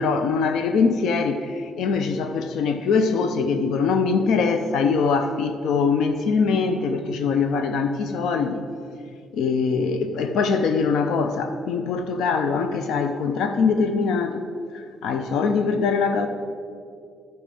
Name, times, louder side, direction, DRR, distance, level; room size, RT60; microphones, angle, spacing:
voice 1, 0.0-8.6 9.3-14.4 14.7-16.3, left 5 dB, 80° left, 7 dB, 0.5 m, -22 dB
10.0 x 4.3 x 7.5 m, 2.3 s
cardioid pair, 90°, 0 cm